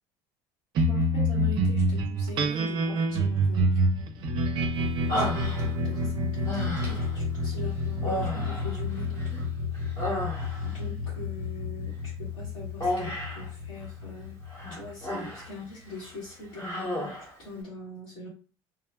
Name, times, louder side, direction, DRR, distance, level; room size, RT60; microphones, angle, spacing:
sound 1, 0.7-15.4, equal, 50° right, 0.5 m, -28 dB
voice 1, 0.9-3.7 4.6-9.4 10.1-10.3 10.6-14.4 14.7-18.3, left 1 dB, 75° left, -8 dB, 1.5 m, -42 dB
Human voice, 5.1-6.0 6.4-7.2 8.0-9.4 9.7-10.8 12.8-13.5 14.5-15.5 15.9-16.1 16.5-17.3, left 1 dB, 25° left, 1.0 m, -33 dB
3.1 x 2.2 x 2.3 m, 0.35 s
cardioid pair, 140°, 10 cm